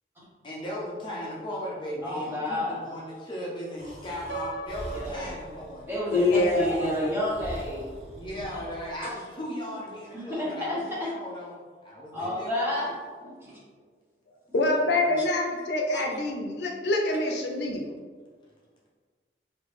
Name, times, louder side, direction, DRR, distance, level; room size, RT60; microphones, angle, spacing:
voice 1, 0.4-5.9 8.1-12.8 14.9-15.1 15.6-15.7, equal, 25° left, -4 dB, 0.6 m, -37 dB
voice 2, 2.0-2.9 4.9-5.3 5.9-7.9 8.3-8.4 9.0-9.1 10.1-11.1 12.1-12.9 13.2-13.6 15.2-15.3 15.9-16.1, left 1 dB, 15° right, -7 dB, 1.0 m, -31 dB
Breathing, 3.8-8.9, equal, 40° right, 0.9 m, -43 dB
Piano, 4.3-6.3, right 3 dB, 80° right, 0.6 m, -40 dB
voice 3, 6.1-7.1 14.5-17.9, left 2 dB, 75° left, 1 dB, 0.5 m, -25 dB
3.3 x 2.6 x 3.2 m, 1.5 s
head